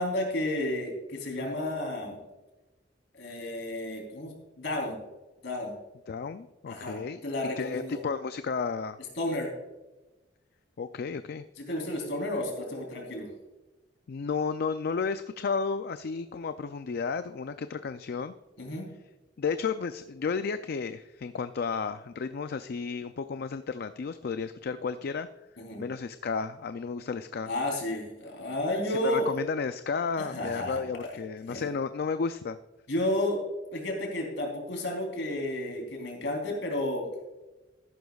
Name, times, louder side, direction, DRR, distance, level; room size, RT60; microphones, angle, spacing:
voice 1, 0.0-2.2 3.1-5.0 5.4-5.7 6.7-8.0 9.2-9.5 11.6-13.3 18.6-18.9 25.6-25.9 27.4-29.4 30.2-30.8 31.5-31.7 32.9-33.4 33.7-37.1, left 1 dB, 70° left, 1 dB, 3.5 m, -32 dB
voice 2, 6.1-7.2 7.6-9.0 10.8-11.5 14.1-18.3 19.4-25.3 25.8-27.5 28.9-32.6, left 5 dB, 55° left, 10 dB, 0.4 m, -32 dB
14.0 x 11.5 x 2.4 m, 1.1 s
head